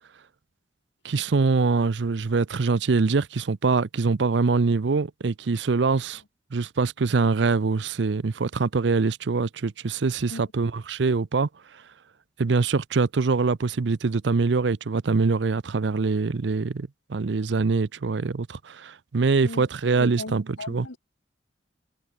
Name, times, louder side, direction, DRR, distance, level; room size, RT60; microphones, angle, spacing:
voice 1, 1.0-6.2 6.5-11.5 12.4-20.9, right 4 dB, 70° right, 0.6 m, -24 dB
voice 2, 20.0-21.0, left 2 dB, 90° left, 1.6 m, -37 dB
head